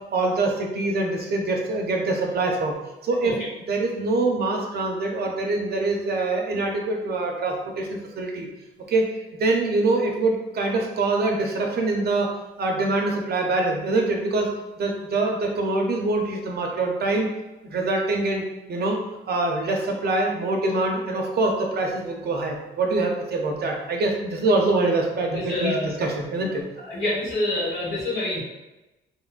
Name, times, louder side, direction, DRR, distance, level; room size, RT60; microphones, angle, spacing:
voice 1, 0.1-2.7 3.0-8.5 8.9-9.1 9.4-14.5 14.8-17.3 17.7-19.0 19.3-26.6, right 2 dB, 55° right, 1 dB, 0.6 m, -24 dB
voice 2, 25.3-25.9 26.4-26.5 26.8-28.4, left 1 dB, 75° left, -6 dB, 1.4 m, -27 dB
3.0 x 2.2 x 2.4 m, 1.0 s
cardioid pair, 90°, 20 cm